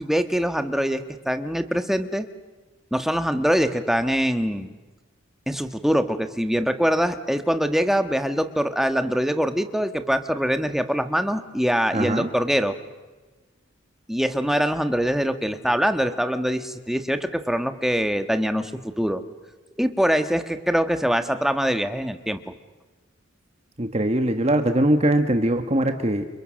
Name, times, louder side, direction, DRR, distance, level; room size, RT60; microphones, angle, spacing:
voice 1, 0.0-2.3 2.9-4.7 5.5-12.8 14.1-18.7 19.0-19.2 19.8-22.4, equal, ahead, 8 dB, 1.4 m, -23 dB
voice 2, 11.9-12.3 23.8-26.3, right 1 dB, 30° right, 7 dB, 1.4 m, -21 dB
30.0 x 29.0 x 6.4 m, 1.2 s
head